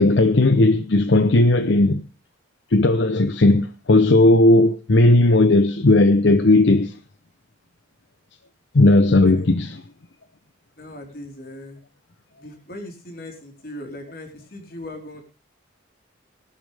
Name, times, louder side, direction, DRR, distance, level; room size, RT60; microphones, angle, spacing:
voice 1, 0.0-2.0 2.7-7.0 8.7-9.8, left 2 dB, 65° left, 0.7 m, -16 dB
voice 2, 10.8-11.8 12.4-15.2, left 1 dB, 45° left, 4.1 m, -38 dB
19.0 x 11.5 x 3.4 m
head